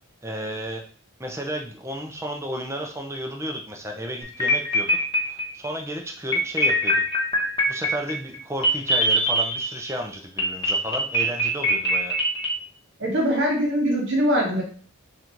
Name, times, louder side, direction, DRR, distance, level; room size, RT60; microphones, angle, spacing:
voice 1, 0.2-0.8 1.2-4.9 5.3-7.0 7.7-12.1, equal, 10° right, 3 dB, 0.5 m, -32 dB
sound 1, 4.2-5.7 6.3-9.9 10.4-12.5, equal, 20° left, 1.1 m, -22 dB
voice 2, 13.0-14.6, equal, 55° right, -1 dB, 1.4 m, -22 dB
4.1 x 2.5 x 4.4 m, 0.44 s
head